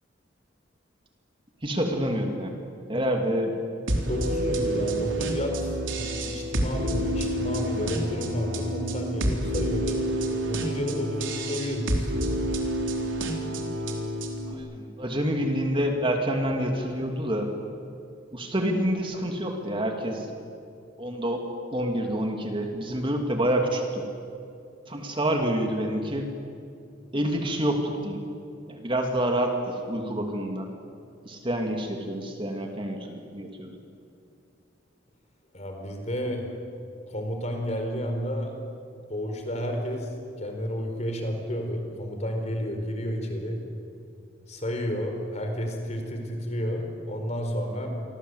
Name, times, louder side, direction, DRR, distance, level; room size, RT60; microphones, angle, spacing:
voice 1, 1.6-2.5 2.9-3.5 14.4-17.5 18.3-20.3 21.0-21.4 21.7-24.1 24.9-26.3 27.1-28.2 28.7-30.7 31.2-33.8, right 1 dB, 25° right, 3 dB, 2.7 m, -27 dB
sound 1, 3.9-14.5, right 1 dB, 80° right, 4.0 m, -28 dB
voice 2, 4.0-10.0 10.5-12.1 35.5-36.4 37.1-38.6 39.1-43.6 44.5-47.9, equal, 35° left, 4 dB, 4.5 m, -31 dB
29.0 x 24.0 x 8.2 m, 2.5 s
head